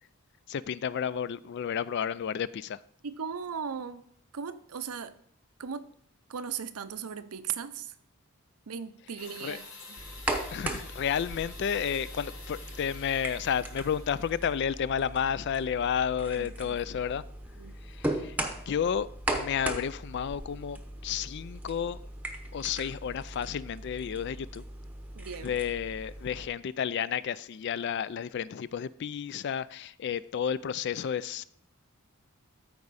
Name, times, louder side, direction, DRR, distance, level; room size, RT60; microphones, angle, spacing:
voice 1, 0.5-2.8 9.4-9.6 10.5-17.2 17.8-18.4 18.7-22.0 22.5-24.6 25.4-31.4, left 8 dB, 50° left, 0.3 m, -31 dB
voice 2, 3.0-4.0 4.3-5.1 5.6-5.9 6.3-7.9 8.7-10.0 16.4-17.0 17.6-17.8 25.2-25.6, right 7 dB, 85° right, 0.6 m, -38 dB
sound 1, 9.2-14.6, left 3 dB, 75° left, 3.7 m, -48 dB
sound 2, 10.0-26.5, right 1 dB, 5° right, 0.8 m, -38 dB
13.5 x 4.7 x 4.1 m
head